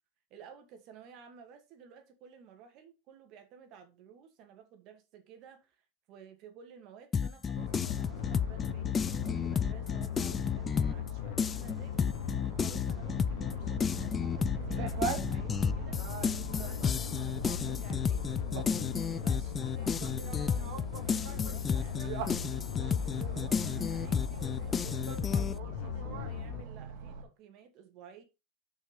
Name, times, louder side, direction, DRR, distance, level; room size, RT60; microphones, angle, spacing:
voice 1, 0.3-16.0 16.5-18.4 19.1-22.7 23.3-28.2, right 7 dB, 50° right, 2.3 m, -54 dB
sound 1, 7.1-11.1 11.4-25.6, left 6 dB, 20° left, 0.4 m, -32 dB
sound 2, 7.5-26.6, left 12 dB, 70° left, 0.8 m, -39 dB
sound 3, 7.6-27.2, right 5 dB, 65° right, 1.9 m, -43 dB
6.3 x 5.5 x 5.2 m
supercardioid pair, 130°, 0 cm